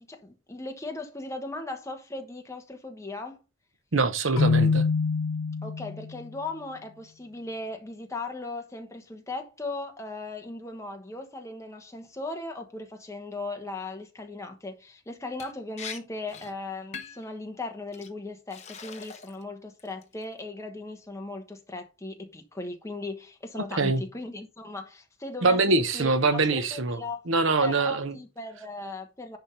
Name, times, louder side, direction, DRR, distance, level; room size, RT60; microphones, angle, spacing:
voice 1, 0.0-3.4 5.6-25.6 25.9-27.3 27.6-29.4, left 2 dB, 15° left, 1.2 m, -38 dB
voice 2, 3.9-4.8 23.8-24.0 25.4-27.0 27.3-28.1, right 3 dB, 75° right, 1.0 m, -23 dB
Keyboard (musical), 4.4-6.2, left 4 dB, 85° left, 0.5 m, -25 dB
Liquid, 15.4-15.5 15.8-16.0 16.3-16.5 16.9-17.3 17.9-18.1 18.5-19.4 19.8-20.2, left 6 dB, 35° left, 1.0 m, -41 dB
10.5 x 3.6 x 5.5 m
head